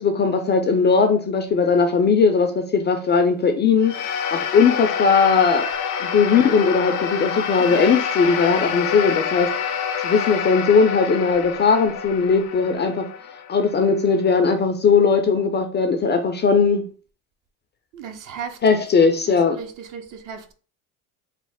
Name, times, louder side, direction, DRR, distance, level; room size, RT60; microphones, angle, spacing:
voice 1, 0.0-5.7 6.0-13.0 13.5-16.8 18.6-19.6, left 5 dB, 25° left, 0.3 m, -19 dB
sound 1, 3.8-14.3, left 7 dB, 80° left, 0.6 m, -27 dB
voice 2, 7.7-8.0 17.9-18.8 19.3-20.5, right 7 dB, 45° right, 0.6 m, -36 dB
3.1 x 2.0 x 3.4 m
hypercardioid pair, 75°, 42 cm